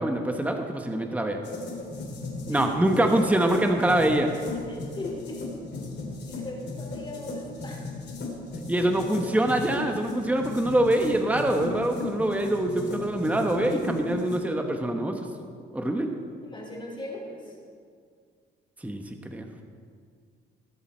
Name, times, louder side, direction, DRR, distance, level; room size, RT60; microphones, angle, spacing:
voice 1, 0.0-1.4 2.5-4.3 8.7-15.2 15.7-16.1 18.8-19.5, right 1 dB, 5° right, 4 dB, 1.1 m, -24 dB
sound 1, 1.4-14.4, left 3 dB, 55° left, 3.2 m, -36 dB
voice 2, 4.7-5.4 6.3-7.8 16.4-17.6, left 1 dB, 25° left, -2 dB, 3.9 m, -38 dB
20.5 x 7.0 x 4.4 m, 2.1 s
cardioid pair, 90°, 20 cm